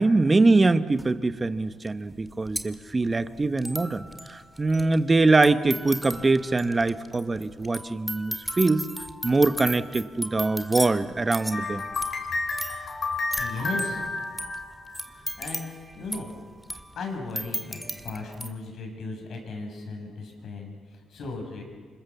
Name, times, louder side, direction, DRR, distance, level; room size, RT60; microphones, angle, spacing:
voice 1, 0.0-8.9 9.2-11.8, right 3 dB, 25° right, 11 dB, 1.2 m, -23 dB
sound 1, 1.0-1.1 1.9-2.0 2.1-18.5, equal, ahead, 2.0 m, -37 dB
sound 2, 11.5-15.3, left 3 dB, 45° left, 5.4 m, -31 dB
voice 2, 13.4-14.0 15.0-16.3 16.9-21.6, left 3 dB, 65° left, 3 dB, 7.2 m, -36 dB
28.0 x 25.0 x 7.3 m, 1.5 s
cardioid pair, 90°, 0 cm